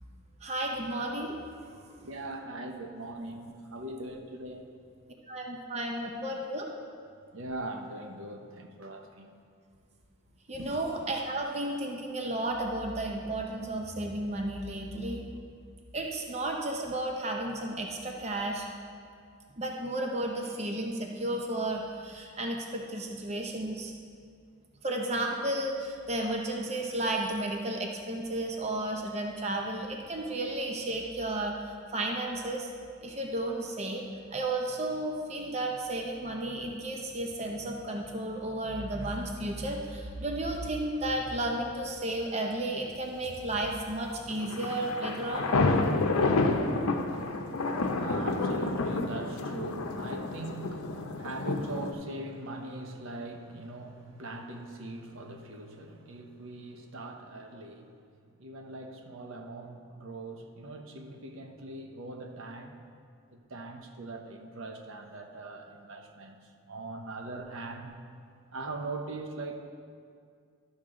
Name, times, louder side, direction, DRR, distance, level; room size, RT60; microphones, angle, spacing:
voice 1, 0.4-1.4 1.8-1.9 5.3-6.7 10.5-15.3 15.9-18.7 19.6-23.9 24.8-31.6 31.9-32.7 33.0-34.0 34.3-45.4, right 1 dB, 30° right, 1 dB, 0.6 m, -33 dB
voice 2, 2.1-4.6 7.3-9.3 10.5-10.8 47.2-57.9 58.4-62.8 63.3-66.4 66.7-67.9 68.5-69.6, right 2 dB, 65° right, 4 dB, 0.7 m, -41 dB
sound 1, 44.3-51.9, left 3 dB, 90° left, 0.7 m, -29 dB
12.0 x 6.3 x 3.7 m, 2.2 s
head